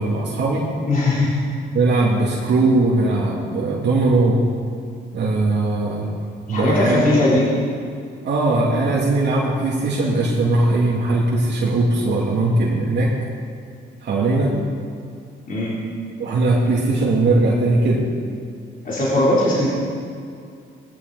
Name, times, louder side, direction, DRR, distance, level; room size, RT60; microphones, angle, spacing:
voice 1, 0.0-0.7 1.7-4.4 5.1-6.1 6.5-7.1 8.2-13.2 14.0-14.6 16.2-18.1, right 2 dB, 60° right, -5 dB, 2.8 m, -19 dB
voice 2, 0.9-1.3 6.5-7.5 15.5-15.7 18.8-19.7, left 2 dB, 45° left, -7 dB, 3.9 m, -19 dB
18.5 x 16.5 x 4.2 m, 2.3 s
cardioid pair, 90°, 20 cm